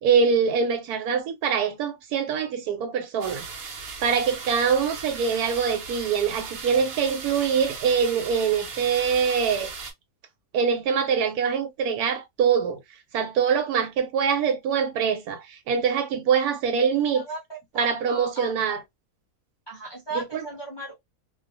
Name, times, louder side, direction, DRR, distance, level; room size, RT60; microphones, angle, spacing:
voice 1, 0.0-3.4 4.0-9.7 10.5-12.8 13.1-17.2 17.8-18.8 20.1-20.4, right 6 dB, 80° right, 1.2 m, -24 dB
sound 1, 3.2-9.9, right 5 dB, 60° right, 0.7 m, -37 dB
voice 2, 17.7-18.5 19.7-20.9, right 1 dB, 35° left, 0.4 m, -36 dB
2.4 x 2.3 x 2.5 m
omnidirectional pair, 1.6 m